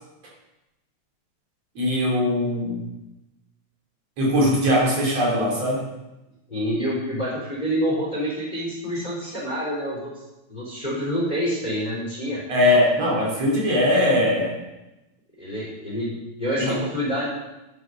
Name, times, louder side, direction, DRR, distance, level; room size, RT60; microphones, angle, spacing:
voice 1, 1.8-2.8 4.2-5.9 12.5-14.6 16.6-16.8, left 1 dB, 60° right, -3 dB, 4.0 m, -20 dB
voice 2, 6.5-10.1 10.5-12.4 15.4-17.3, equal, 15° left, -4 dB, 3.2 m, -27 dB
11.0 x 7.7 x 6.1 m, 0.96 s
omnidirectional pair, 3.4 m